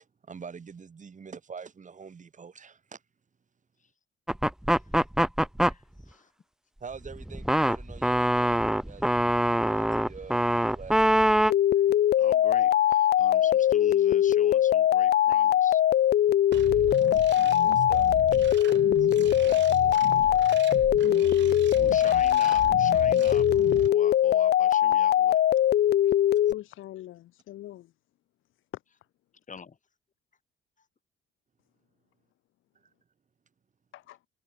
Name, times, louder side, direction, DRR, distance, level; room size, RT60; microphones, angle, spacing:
voice 1, 0.2-3.0 6.8-9.2 9.5-11.2 17.6-18.1 19.0-19.1 19.4-20.0, right 5 dB, 40° right, 3.8 m, -45 dB
sound 1, 4.3-5.7 6.9-11.5, right 1 dB, 5° right, 0.5 m, -24 dB
voice 2, 5.6-6.3 11.7-11.8 12.2-15.8 19.0-19.1 21.8-25.4 29.5-29.8, left 5 dB, 40° left, 8.0 m, -45 dB
sound 2, 11.5-26.5, left 11 dB, 55° left, 0.6 m, -21 dB
sound 3, 16.5-23.9, right 11 dB, 65° right, 1.2 m, -37 dB
voice 3, 26.5-27.9 28.7-29.1 33.9-34.2, left 14 dB, 85° left, 3.1 m, -43 dB
cardioid pair, 90°, 20 cm